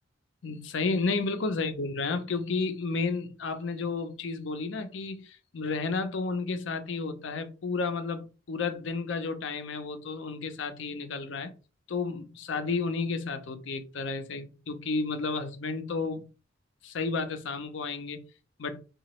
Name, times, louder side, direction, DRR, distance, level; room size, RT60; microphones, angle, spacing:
voice 1, 0.4-11.5 11.9-16.2 16.8-18.2 18.6-18.8, left 4 dB, 70° left, 0.5 m, -32 dB
2.8 x 2.3 x 3.0 m
head